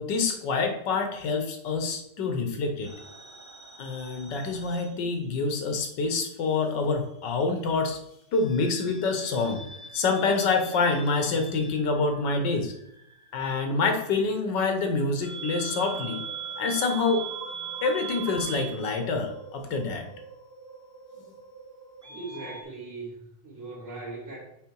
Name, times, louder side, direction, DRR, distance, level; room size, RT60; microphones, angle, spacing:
voice 1, 0.0-2.9 3.8-8.0 8.3-9.7 9.9-12.7 13.3-16.2 16.6-17.2 17.8-20.1, left 4 dB, 80° left, 5 dB, 1.6 m, -27 dB
sound 1, 2.8-5.7 5.9-7.1 8.3-22.6, right 5 dB, 20° right, 0.4 m, -41 dB
voice 2, 22.1-24.4, right 3 dB, 40° right, -9 dB, 2.3 m, -39 dB
7.5 x 4.0 x 4.6 m, 0.78 s
omnidirectional pair, 1.9 m